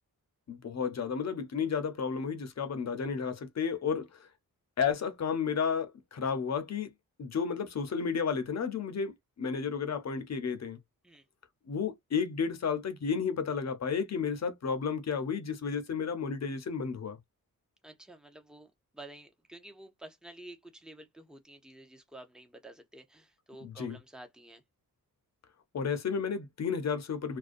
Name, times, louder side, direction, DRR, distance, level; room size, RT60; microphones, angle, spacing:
voice 1, 0.5-4.3 4.8-6.9 7.2-10.8 11.7-17.2 23.6-24.0 25.7-27.4, left 6 dB, 50° left, 0.6 m, -32 dB
voice 2, 17.8-24.6, right 1 dB, ahead, 0.6 m, -50 dB
2.4 x 2.2 x 2.5 m
wide cardioid pair, 110°, 35 cm